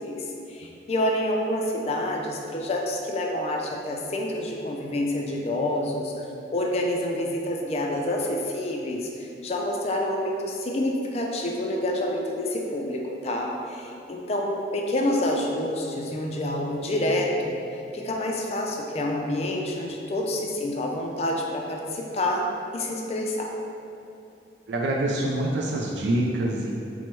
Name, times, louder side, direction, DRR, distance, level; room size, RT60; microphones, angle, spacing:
voice 1, 0.0-6.3 6.5-22.5 22.7-23.5, left 1 dB, 35° left, 0 dB, 0.4 m, -28 dB
voice 2, 24.7-26.7, right 1 dB, 75° right, -2 dB, 0.4 m, -25 dB
4.4 x 2.1 x 4.4 m, 2.6 s
head